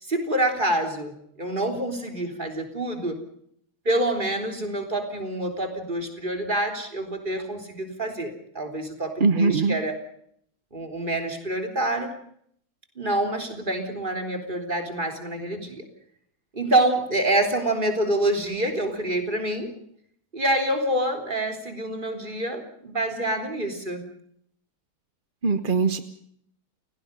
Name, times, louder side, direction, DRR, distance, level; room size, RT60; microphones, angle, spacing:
voice 1, 0.0-3.2 3.9-10.0 10.7-12.1 13.0-15.9 16.5-19.7 20.3-24.0, right 1 dB, 20° right, 4 dB, 3.6 m, -27 dB
voice 2, 9.2-9.8 25.4-26.0, right 4 dB, 40° right, 10 dB, 0.7 m, -21 dB
29.5 x 18.0 x 5.3 m, 0.66 s
omnidirectional pair, 2.4 m